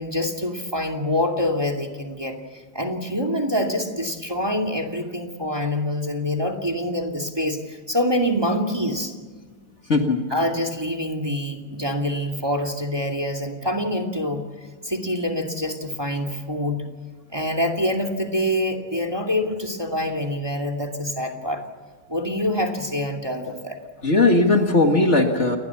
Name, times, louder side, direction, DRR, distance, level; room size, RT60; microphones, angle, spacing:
voice 1, 0.0-9.1 10.3-14.5 14.8-16.8 17.3-21.6 22.1-23.8, left 1 dB, 15° right, 3 dB, 2.5 m, -25 dB
voice 2, 9.9-10.2 24.0-25.6, left 2 dB, 40° left, 4 dB, 2.1 m, -18 dB
29.0 x 21.0 x 7.2 m, 1.5 s
omnidirectional pair, 1.8 m